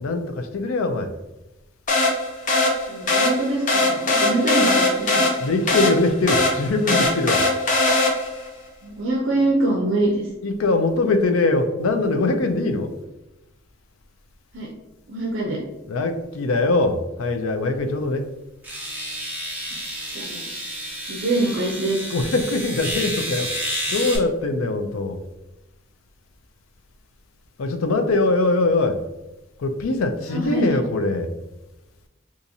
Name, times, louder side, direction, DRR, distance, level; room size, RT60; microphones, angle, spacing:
voice 1, 0.0-1.1 5.4-7.4 10.4-12.9 15.9-18.2 22.1-23.5 23.9-25.2 27.6-29.0 29.6-31.3, left 2 dB, 85° left, 7 dB, 0.4 m, -22 dB
sound 1, 1.9-8.5, left 2 dB, 40° left, 0.7 m, -21 dB
voice 2, 2.9-5.3 8.8-10.3 14.5-14.7 15.1-15.6 20.1-20.5 21.1-22.1 30.3-30.8, right 2 dB, 65° right, -1 dB, 0.6 m, -24 dB
sound 2, 17.8-17.9 18.6-24.2, equal, 10° right, 0.7 m, -30 dB
3.9 x 2.5 x 2.7 m, 0.99 s
head